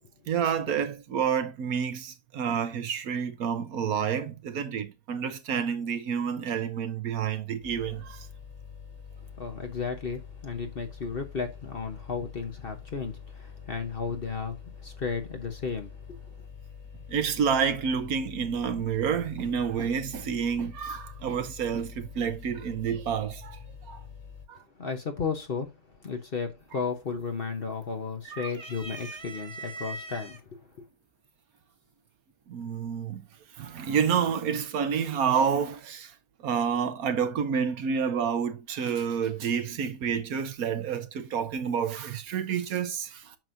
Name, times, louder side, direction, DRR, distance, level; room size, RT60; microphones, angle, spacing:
voice 1, 0.3-8.3 17.1-23.6 23.9-24.0 24.5-24.6 28.2-28.5 32.5-33.2 33.6-36.1 36.4-43.4, right 7 dB, 70° right, 1.2 m, -29 dB
sound 1, 7.6-24.4, left 7 dB, 20° left, 4.5 m, -46 dB
voice 2, 9.4-16.2 24.8-25.7 26.0-30.6, left 5 dB, 45° left, 0.9 m, -34 dB
sound 2, 26.6-27.0 27.4-28.1 28.5-30.4 31.3-31.4 32.6-33.1, right 3 dB, 25° right, 0.6 m, -41 dB
9.0 x 6.1 x 2.6 m
omnidirectional pair, 1.7 m